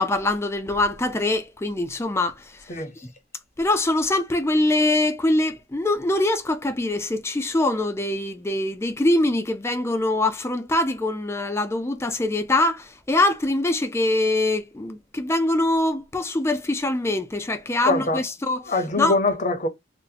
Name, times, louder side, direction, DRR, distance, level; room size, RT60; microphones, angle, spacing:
voice 1, 0.0-3.1 3.6-18.6 19.0-19.1, left 2 dB, 15° left, 0.4 m, -23 dB
voice 2, 17.9-18.2 18.7-19.7, left 2 dB, 40° left, 0.7 m, -23 dB
2.7 x 2.1 x 3.8 m
head